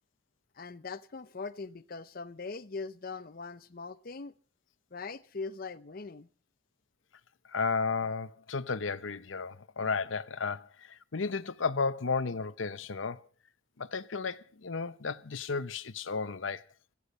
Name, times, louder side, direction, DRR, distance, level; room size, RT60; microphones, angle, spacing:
voice 1, 0.5-4.3 4.9-6.3, left 4 dB, 50° left, 0.7 m, -41 dB
voice 2, 7.5-13.3 13.8-16.6, left 4 dB, 85° left, 0.8 m, -33 dB
17.0 x 13.5 x 5.4 m
head